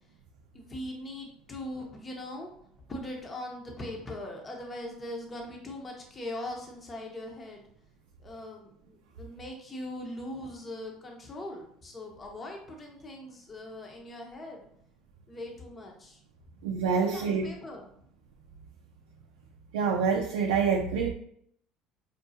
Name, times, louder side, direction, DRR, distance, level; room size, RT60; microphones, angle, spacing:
voice 1, 0.5-2.5 2.9-7.7 8.2-14.7 15.3-16.2 16.9-17.9, left 1 dB, 30° left, 1 dB, 0.8 m, -40 dB
voice 2, 16.6-17.4 19.7-21.1, right 6 dB, 85° right, 1 dB, 0.4 m, -26 dB
5.0 x 2.3 x 2.7 m, 0.67 s
supercardioid pair, 80°, 0 cm